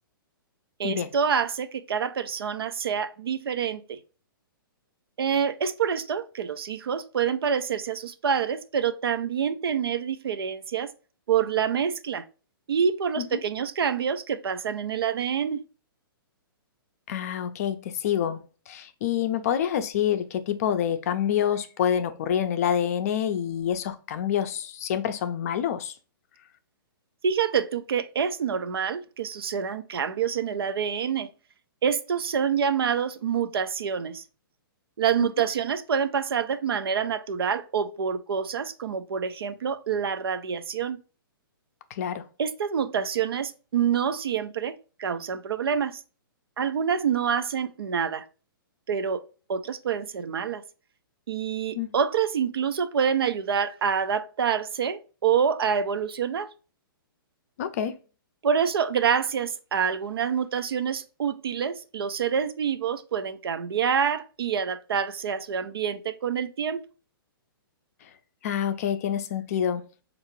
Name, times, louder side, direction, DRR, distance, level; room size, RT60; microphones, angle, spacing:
voice 1, 0.8-4.0 5.2-10.9 11.3-12.3 12.7-15.6 27.2-31.3 31.8-34.2 35.0-41.0 42.4-46.0 46.6-48.3 48.9-49.2 49.5-50.6 51.3-56.5 58.4-66.8, right 7 dB, 90° right, 0.5 m, -27 dB
voice 2, 17.1-25.9 41.9-42.3 51.7-51.9 57.6-57.9 68.4-70.0, left 9 dB, 40° left, 0.4 m, -27 dB
4.6 x 2.5 x 3.0 m
hypercardioid pair, 155°, 12 cm